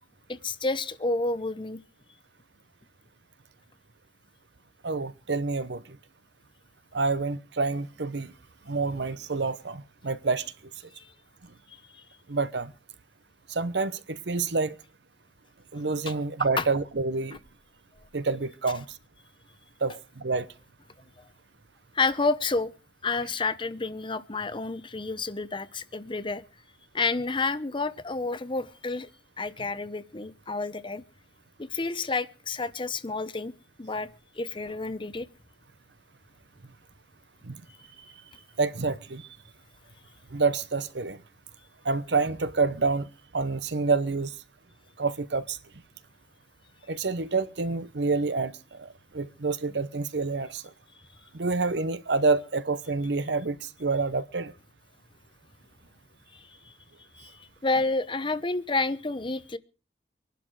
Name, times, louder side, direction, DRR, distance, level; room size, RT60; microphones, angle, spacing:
voice 1, 0.3-1.8 11.0-11.1 16.6-16.7 21.9-22.7 23.0-26.4 26.9-29.1 29.4-31.0 31.6-33.5 33.8-34.1 34.4-35.3 56.7-56.8 57.2-59.6, left 3 dB, 30° left, 0.8 m, -29 dB
voice 2, 4.8-6.0 6.9-8.3 8.7-10.5 12.3-12.7 13.5-14.8 15.7-17.4 18.1-18.8 19.8-20.5 37.5-37.6 38.6-39.3 40.3-41.2 41.8-43.1 43.3-44.3 45.0-45.6 46.9-50.6 51.3-54.5, right 4 dB, 70° right, 0.9 m, -28 dB
23.0 x 11.5 x 4.8 m
head